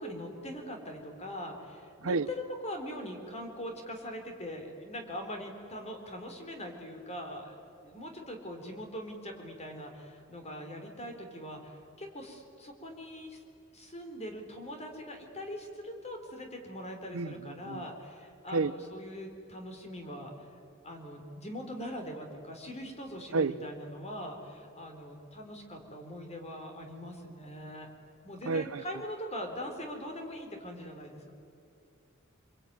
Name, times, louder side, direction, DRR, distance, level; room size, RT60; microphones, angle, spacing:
voice 1, 0.0-7.6 7.8-13.4 13.7-20.5 20.8-27.9 28.2-31.3, equal, 30° left, 4 dB, 3.8 m, -42 dB
voice 2, 28.5-28.8, right 4 dB, 70° right, 16 dB, 0.6 m, -29 dB
27.0 x 22.0 x 9.5 m, 2.5 s
head